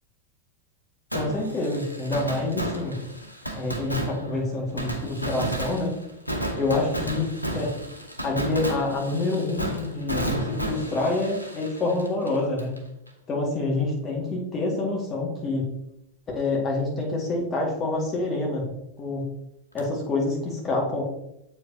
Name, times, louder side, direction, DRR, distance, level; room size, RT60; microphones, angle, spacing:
voice 1, 1.1-3.0 3.6-5.9 6.5-7.7 8.2-12.8 13.3-15.7 16.4-18.6 19.0-19.3 19.7-21.0, left 2 dB, 25° left, -2 dB, 1.9 m, -27 dB
Fireworks, 1.1-12.8 13.1-13.2 19.8-19.9, right 1 dB, 90° right, 0.8 m, -32 dB
7.4 x 4.9 x 2.8 m, 0.82 s
figure-of-eight pair, 90°, 0 cm